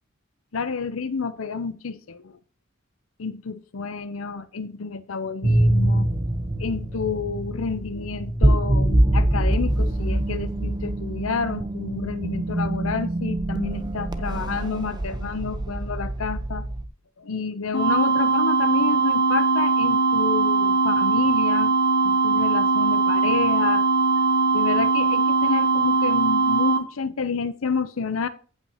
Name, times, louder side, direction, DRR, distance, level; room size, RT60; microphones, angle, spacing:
voice 1, 0.5-2.4 3.2-6.1 6.6-16.6 17.2-21.7 22.0-23.9 24.5-28.3, left 5 dB, 85° left, 0.7 m, -29 dB
sound 1, 5.4-16.9, right 1 dB, 20° right, 0.7 m, -24 dB
sound 2, 17.7-26.8, right 4 dB, 55° left, 1.4 m, -20 dB
15.5 x 5.8 x 2.9 m
head